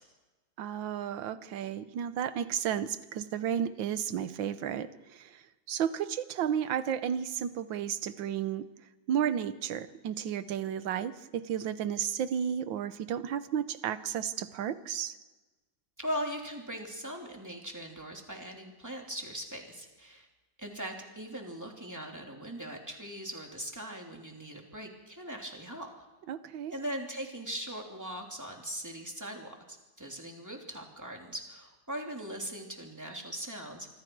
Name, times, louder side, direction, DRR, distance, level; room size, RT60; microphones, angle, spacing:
voice 1, 0.6-5.4 5.7-8.7 9.1-15.1 26.3-26.7, right 9 dB, 90° right, 13 dB, 1.7 m, -33 dB
voice 2, 16.0-20.3 20.6-25.9 26.7-33.9, equal, 10° right, 1 dB, 3.0 m, -40 dB
26.5 x 24.5 x 4.7 m, 1.2 s
omnidirectional pair, 2.0 m